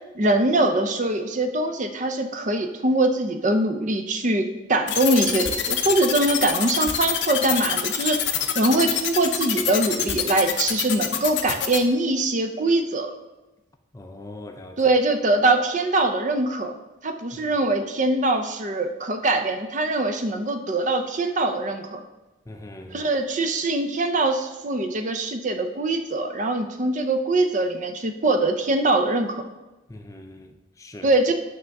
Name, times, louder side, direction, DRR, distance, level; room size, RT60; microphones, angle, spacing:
voice 1, 0.1-8.3 8.5-13.1 14.8-22.0 22.9-29.4 31.0-31.3, right 2 dB, 40° right, 0.6 m, -23 dB
sound 1, 4.9-11.8, left 9 dB, 60° left, 0.7 m, -25 dB
voice 2, 13.9-14.8 22.5-23.1 29.9-31.1, left 1 dB, 15° left, 0.5 m, -41 dB
9.4 x 3.5 x 6.5 m
head